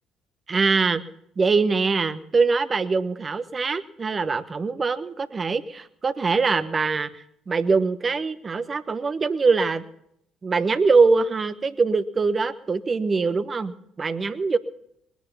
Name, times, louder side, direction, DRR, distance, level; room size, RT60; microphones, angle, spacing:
voice 1, 0.5-1.0 1.4-7.1 7.5-9.9 10.4-14.6, right 4 dB, 35° right, 13 dB, 1.2 m, -23 dB
21.0 x 10.5 x 5.7 m, 0.74 s
hypercardioid pair, 50°, 0 cm